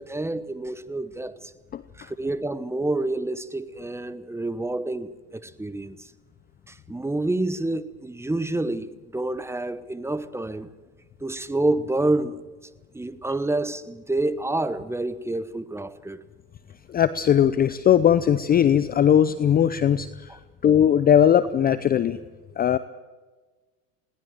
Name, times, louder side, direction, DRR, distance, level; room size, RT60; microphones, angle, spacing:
voice 1, 0.0-1.5 2.0-6.1 6.7-10.7 11.2-12.4 12.9-16.2, right 2 dB, 5° right, 1.0 m, -28 dB
voice 2, 16.9-22.2 22.6-22.8, left 9 dB, 20° left, 0.6 m, -19 dB
21.0 x 18.5 x 7.6 m
hypercardioid pair, 105°, 46 cm